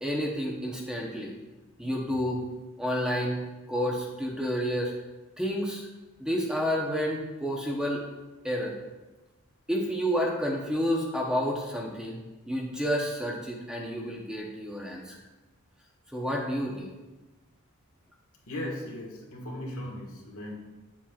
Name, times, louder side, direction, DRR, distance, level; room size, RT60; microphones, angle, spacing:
voice 1, 0.0-1.3 1.8-2.4 2.8-3.4 3.7-4.9 5.4-5.9 6.2-8.0 8.4-8.7 9.7-12.2 12.5-15.2 16.1-16.9, equal, 5° right, -2 dB, 0.9 m, -30 dB
voice 2, 18.5-20.6, left 1 dB, 75° left, -2 dB, 1.7 m, -37 dB
8.7 x 7.4 x 2.4 m, 1.1 s
head